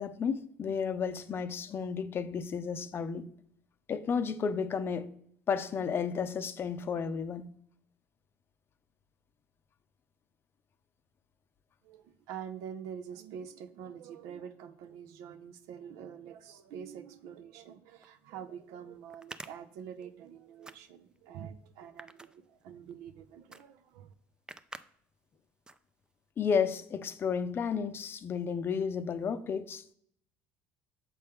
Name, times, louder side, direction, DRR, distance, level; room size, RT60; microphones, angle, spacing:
voice 1, 0.0-3.3 3.9-5.1 5.5-7.5 26.4-29.8, left 6 dB, 40° left, 0.5 m, -32 dB
voice 2, 11.8-24.1, right 8 dB, 75° right, 0.6 m, -46 dB
sound 1, 18.0-18.1 19.1-20.3 20.6-21.2 21.8-22.9 23.5-23.6 23.9-24.0 24.5-24.9 25.2-25.4 25.7-26.2, right 2 dB, 15° right, 0.4 m, -47 dB
6.8 x 4.3 x 3.5 m
supercardioid pair, 80°, 6 cm